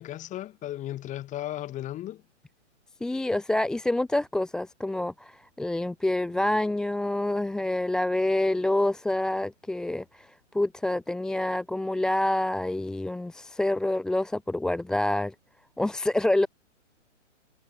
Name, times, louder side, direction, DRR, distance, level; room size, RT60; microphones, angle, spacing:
voice 1, 0.0-2.2 6.4-6.5, left 13 dB, 20° left, 4.1 m, -35 dB
voice 2, 3.0-15.3 15.8-16.5, left 1 dB, ahead, 0.7 m, -27 dB
hypercardioid pair, 140°, 38 cm